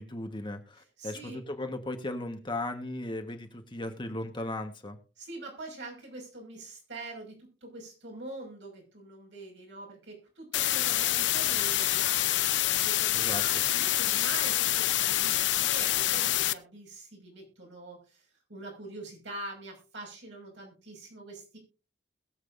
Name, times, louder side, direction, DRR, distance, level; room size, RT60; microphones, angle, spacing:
voice 1, 0.0-5.0 13.1-13.4, left 1 dB, 25° left, 5 dB, 1.3 m, -36 dB
voice 2, 0.8-1.4 5.2-12.5 12.8-21.6, right 2 dB, 75° right, 0 dB, 5.6 m, -44 dB
sound 1, 10.5-16.5, left 14 dB, 70° left, 0.6 m, -26 dB
21.5 x 7.6 x 2.6 m, 0.34 s
head